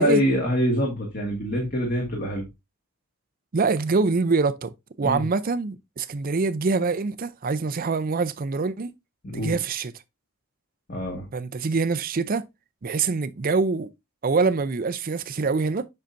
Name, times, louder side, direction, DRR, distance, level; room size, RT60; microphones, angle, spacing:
voice 1, 0.0-2.5 5.0-5.2 9.2-9.5 10.9-11.3, equal, 40° left, 1.7 m, -25 dB
voice 2, 3.5-8.9 9.3-9.9 11.3-12.4 12.8-13.9 14.2-15.9, right 4 dB, 40° right, 0.5 m, -25 dB
7.5 x 5.7 x 2.6 m
head